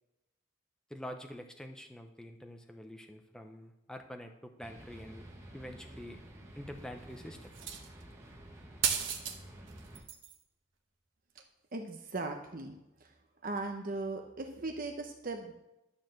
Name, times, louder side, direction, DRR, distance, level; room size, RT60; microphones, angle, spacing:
voice 1, 0.9-5.3 5.5-6.2 6.6-7.5, equal, 5° left, 4 dB, 0.7 m, -46 dB
sound 1, 4.6-10.0, right 1 dB, 15° right, 1.5 m, -51 dB
sound 2, 7.5-8.0 8.8-9.4 9.7-10.4 11.4-11.5, right 8 dB, 70° right, 1.2 m, -34 dB
voice 2, 11.7-13.1 13.4-15.5, right 3 dB, 45° right, 4 dB, 0.9 m, -38 dB
11.5 x 4.9 x 7.5 m, 0.92 s
head